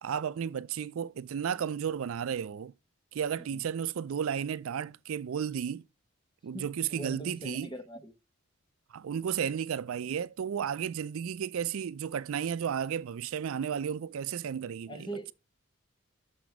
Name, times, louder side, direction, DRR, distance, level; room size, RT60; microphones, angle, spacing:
voice 1, 0.0-2.7 3.1-5.8 6.4-7.7 8.9-15.1, right 8 dB, 80° right, 0.4 m, -33 dB
voice 2, 6.5-8.1 14.9-15.3, right 2 dB, 20° left, 1.0 m, -42 dB
6.0 x 6.0 x 4.7 m
head